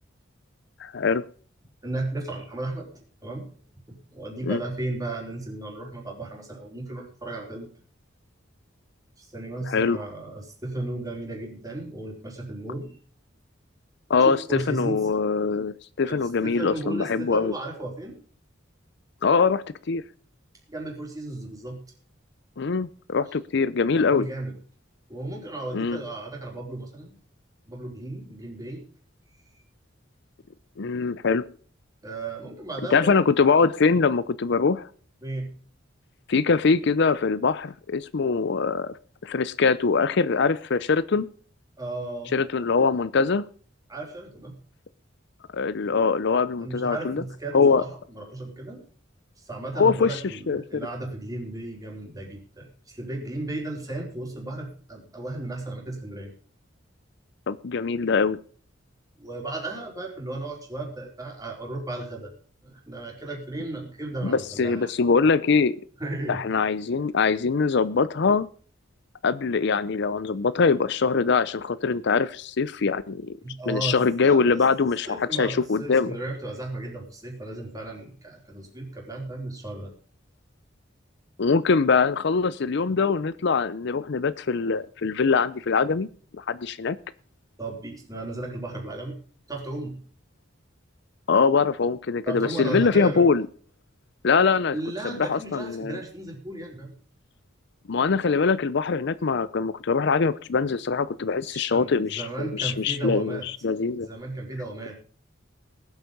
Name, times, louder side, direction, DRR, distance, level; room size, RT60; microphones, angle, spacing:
voice 1, 0.8-1.2 4.4-4.6 9.7-10.0 14.1-17.5 19.2-20.0 22.6-24.3 25.7-26.0 30.8-31.4 32.9-34.9 36.3-38.9 39.2-41.3 42.3-43.4 45.5-47.2 47.5-47.8 49.8-50.2 50.5-50.8 57.5-58.4 64.2-65.8 66.3-68.5 69.2-73.3 73.7-76.2 81.4-86.1 86.3-87.0 91.3-93.5 94.2-94.8 95.0-96.0 97.9-104.1, left 5 dB, 60° left, 0.5 m, -23 dB
voice 2, 1.8-2.9 3.2-3.5 3.9-7.7 9.2-13.0 14.1-15.0 16.1-18.2 20.7-21.8 23.9-24.6 25.1-27.2 27.7-28.8 32.0-33.2 35.2-35.5 41.8-42.4 43.9-44.5 46.6-48.8 49.4-56.3 59.2-62.3 62.6-64.9 66.0-66.4 73.4-74.0 74.2-74.6 75.1-79.9 87.6-89.1 89.5-90.0 92.3-93.2 94.7-96.9 101.5-103.5 104.0-105.0, right 2 dB, 20° right, 4.1 m, -35 dB
18.5 x 8.2 x 5.4 m
head